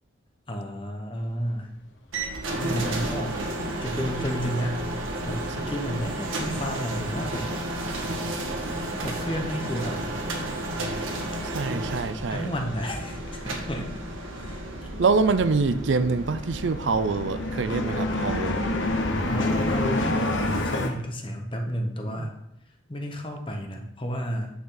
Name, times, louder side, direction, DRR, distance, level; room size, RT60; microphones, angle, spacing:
voice 1, 0.5-1.7 2.6-3.4 3.8-4.8 5.3-7.5 8.9-10.0 12.3-13.9 14.4-14.6 19.3-22.4 22.9-24.5, equal, 25° left, 3 dB, 1.1 m, -32 dB
sound 1, 2.1-20.0, right 1 dB, 80° right, 1.8 m, -33 dB
sound 2, 8.6-9.5 9.8-20.9, left 1 dB, 70° left, 1.2 m, -30 dB
voice 2, 11.5-12.5 15.0-18.6 22.1-22.3, right 4 dB, 60° right, 12 dB, 0.4 m, -25 dB
9.4 x 6.8 x 3.9 m, 0.81 s
head